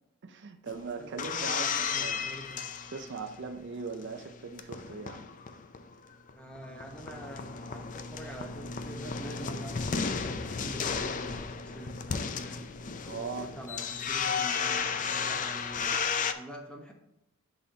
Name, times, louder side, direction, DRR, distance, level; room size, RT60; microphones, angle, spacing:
voice 1, 0.2-2.2 2.9-5.2 13.0-13.5, right 4 dB, 50° right, 7 dB, 0.5 m, -39 dB
sound 1, 0.7-3.5 3.9-5.9 6.3-6.4 6.6-16.3, left 6 dB, 35° left, 0.4 m, -34 dB
voice 2, 1.0-2.6 6.3-12.7 13.4-16.9, right 1 dB, 5° left, 1 dB, 1.0 m, -46 dB
11.0 x 4.2 x 2.8 m, 0.93 s
head